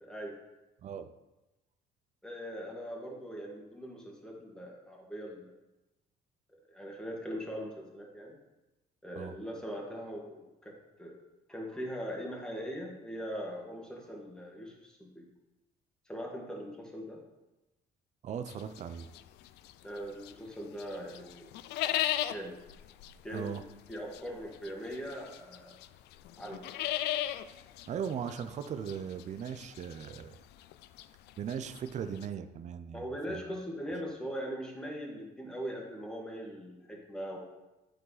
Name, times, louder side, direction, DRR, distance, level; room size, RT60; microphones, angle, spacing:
voice 1, 0.0-0.4 2.2-5.5 6.5-8.4 9.0-11.2 11.5-15.3 16.1-17.2 19.8-21.5 21.8-22.0 22.3-22.6 23.2-23.6 23.9-25.8 26.4-26.7 32.9-37.4, equal, 5° left, -2 dB, 1.9 m, -41 dB
voice 2, 18.2-19.1 23.3-23.6 27.9-30.4 31.4-33.4, right 8 dB, 45° right, 10 dB, 0.5 m, -38 dB
sound 1, 18.5-20.5 20.8-32.3, left 13 dB, 80° left, 0.4 m, -37 dB
8.9 x 4.8 x 4.1 m, 1.0 s
cardioid pair, 110°, 17 cm